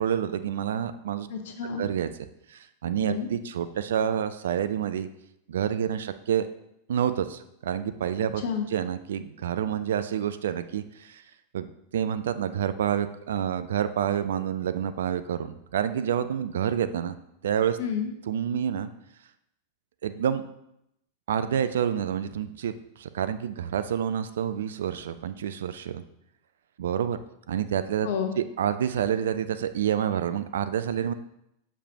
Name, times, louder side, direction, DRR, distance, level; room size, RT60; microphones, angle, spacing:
voice 1, 0.0-1.3 1.8-2.1 2.5-5.1 5.5-6.5 6.9-8.4 8.7-11.2 11.5-11.7 11.9-17.2 17.4-17.8 18.3-18.9 20.0-20.5 21.3-26.0 26.8-27.2 27.5-28.1 28.4-31.1, right 9 dB, 60° right, 12 dB, 0.3 m, -28 dB
voice 2, 1.3-1.9 3.0-3.3 8.4-8.7 17.8-18.1 28.0-28.3, left 7 dB, 55° left, 5 dB, 0.9 m, -30 dB
6.5 x 5.2 x 2.8 m, 0.81 s
figure-of-eight pair, 90°, 0 cm